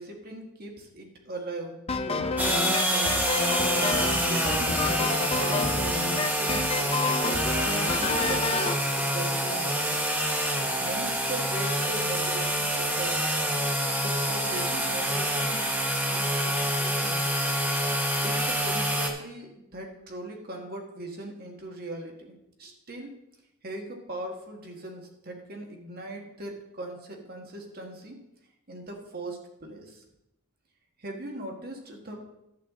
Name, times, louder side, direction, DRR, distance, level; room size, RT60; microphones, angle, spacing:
voice 1, 0.0-3.3 4.3-10.0 10.8-13.2 14.0-15.7 16.1-17.3 18.2-23.1 23.6-28.2 28.7-30.0 31.0-32.2, right 2 dB, 45° right, 1 dB, 1.6 m, -39 dB
sound 1, 1.9-8.8, left 3 dB, 25° left, 0.5 m, -29 dB
sound 2, 2.4-19.1, equal, 10° right, 1.0 m, -27 dB
11.5 x 8.2 x 3.7 m, 0.86 s
head